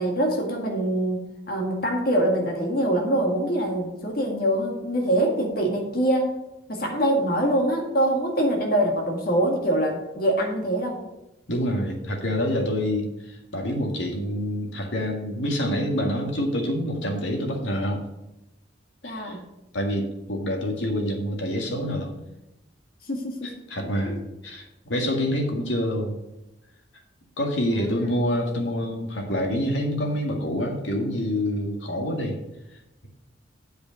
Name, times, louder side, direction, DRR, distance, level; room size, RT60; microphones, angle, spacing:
voice 1, 0.0-6.3 6.7-11.0 19.0-19.4 23.1-23.5 23.8-24.2 27.7-28.2, right 1 dB, 50° left, 1 dB, 1.8 m, -24 dB
voice 2, 11.5-18.0 19.0-19.4 19.7-22.1 23.4-26.2 27.4-32.4, equal, 80° left, 2 dB, 1.9 m, -27 dB
8.0 x 5.2 x 6.8 m, 0.92 s
head